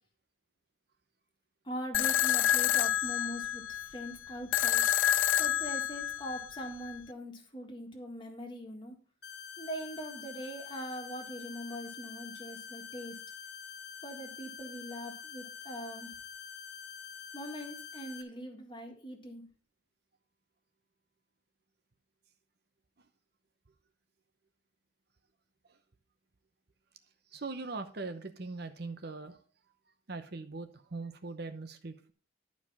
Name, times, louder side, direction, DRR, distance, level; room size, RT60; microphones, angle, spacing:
voice 1, 1.6-4.8 5.4-9.0 9.6-13.2 14.0-16.1 17.3-19.4, equal, 25° left, 3 dB, 1.7 m, -42 dB
sound 1, 1.9-7.0, left 12 dB, 75° left, 0.3 m, -29 dB
sound 2, 9.2-18.2, left 7 dB, 55° left, 1.1 m, -46 dB
voice 2, 27.3-29.4 30.1-32.1, right 3 dB, 55° right, 8 dB, 0.8 m, -41 dB
11.5 x 4.9 x 5.4 m, 0.39 s
head